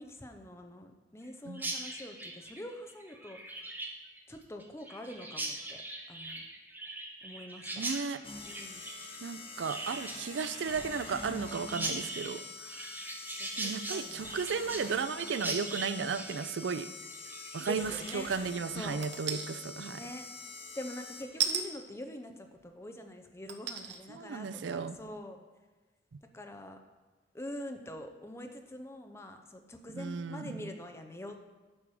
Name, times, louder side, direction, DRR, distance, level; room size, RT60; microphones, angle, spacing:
voice 1, 0.0-3.4 4.3-5.8 6.1-6.4 7.2-7.8 8.5-8.8 13.4-14.3 17.7-18.3 18.7-19.0 19.9-20.3 20.8-25.4 26.3-26.8 27.3-31.4, left 1 dB, 15° left, 5 dB, 0.7 m, -45 dB
voice 2, 1.4-1.8 7.7-8.2 9.2-12.8 13.6-16.9 17.5-20.1 24.1-25.0 26.1-26.2 29.9-30.7, right 5 dB, 90° right, 13 dB, 0.4 m, -35 dB
Chirp tweet, 1.5-18.4, right 2 dB, 10° right, 0.9 m, -41 dB
sound 1, 8.2-21.6, left 3 dB, 30° left, 1.1 m, -46 dB
sound 2, 19.0-19.5 21.4-21.6 22.6-22.7 23.5-24.0 24.5-24.6, right 8 dB, 70° right, 0.8 m, -32 dB
8.9 x 6.0 x 4.8 m, 1.3 s
head